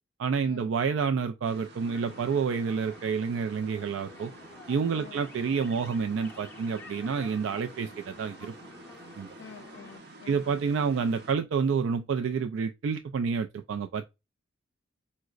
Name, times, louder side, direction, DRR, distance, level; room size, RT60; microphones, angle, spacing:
voice 1, 0.2-4.3 4.7-8.5 9.2-9.4 10.3-14.1, right 5 dB, 75° right, 0.3 m, -29 dB
sound 1, 1.4-11.3, right 2 dB, 55° right, 0.7 m, -49 dB
sound 2, 1.8-10.0, left 3 dB, 10° left, 0.6 m, -50 dB
voice 2, 9.4-10.7, left 6 dB, 80° left, 0.4 m, -49 dB
4.7 x 2.1 x 2.3 m
head